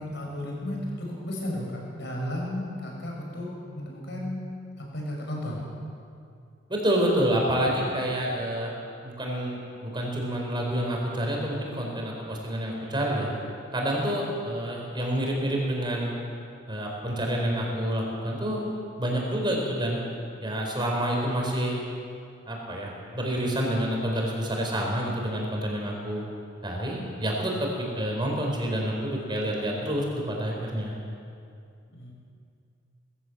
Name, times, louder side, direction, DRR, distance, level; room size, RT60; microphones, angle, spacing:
voice 1, 0.0-4.4 4.8-5.6 31.9-32.1, left 1 dB, 60° left, -1 dB, 6.1 m, -34 dB
voice 2, 6.7-8.7 9.0-13.3 13.7-16.1 16.7-18.6 19.0-20.0 20.4-21.8 22.5-26.2 26.6-31.0, right 1 dB, 25° right, -1 dB, 4.5 m, -28 dB
21.0 x 15.5 x 8.0 m, 2.4 s
head